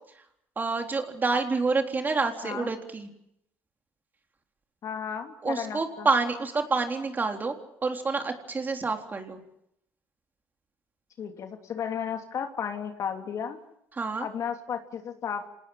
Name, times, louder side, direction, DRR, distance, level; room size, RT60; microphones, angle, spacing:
voice 1, 0.6-3.1 5.4-7.6 7.8-9.4 14.0-14.3, right 4 dB, 30° right, 4 dB, 3.9 m, -28 dB
voice 2, 4.8-6.1 11.2-13.6 14.2-15.5, left 7 dB, 55° left, 5 dB, 3.1 m, -34 dB
27.0 x 19.0 x 7.4 m, 0.77 s
supercardioid pair, 80°, 7 cm